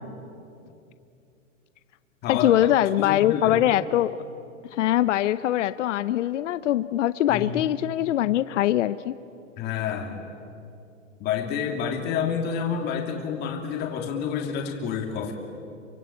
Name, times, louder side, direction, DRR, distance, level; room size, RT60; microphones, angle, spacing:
voice 1, 2.3-4.1 4.7-9.1, left 13 dB, 65° left, 14 dB, 0.7 m, -22 dB
voice 2, 3.0-3.6 7.3-7.6 9.6-10.3 11.2-15.3, left 7 dB, 25° left, 3 dB, 2.8 m, -29 dB
28.0 x 25.0 x 8.5 m, 2.7 s
hypercardioid pair, 160°, 39 cm